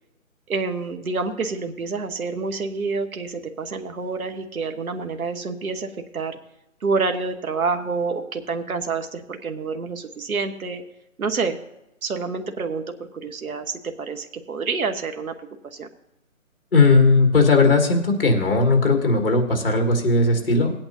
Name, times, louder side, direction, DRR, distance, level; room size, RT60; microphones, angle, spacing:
voice 1, 0.5-6.4 6.8-10.8 11.2-11.6 12.0-12.8 13.1-15.3 15.7-15.9, right 4 dB, 80° right, 6 dB, 1.2 m, -28 dB
voice 2, 16.7-20.8, left 3 dB, 40° left, 4 dB, 1.6 m, -17 dB
18.5 x 8.8 x 2.7 m, 0.89 s
hypercardioid pair, 180°, 42 cm